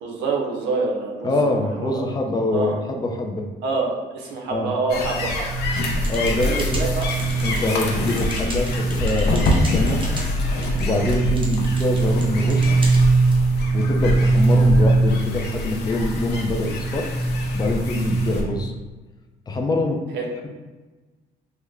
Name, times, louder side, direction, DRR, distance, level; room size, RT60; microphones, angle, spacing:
voice 1, 0.0-2.0 2.5-2.7 3.6-5.4 6.4-7.0 20.1-20.2, right 3 dB, 90° right, -1 dB, 0.6 m, -26 dB
voice 2, 1.2-3.4 4.5-4.7 6.1-6.7 7.4-10.0 10.8-12.7 13.7-17.1 17.5-18.7 19.5-20.0, left 2 dB, 25° left, 3 dB, 0.5 m, -24 dB
sound 1, 4.9-18.4, right 1 dB, 70° left, 0.6 m, -21 dB
sound 2, 5.7-13.4, right 2 dB, 30° right, 0.7 m, -38 dB
3.6 x 2.1 x 3.2 m, 1.2 s
cardioid pair, 85°, 18 cm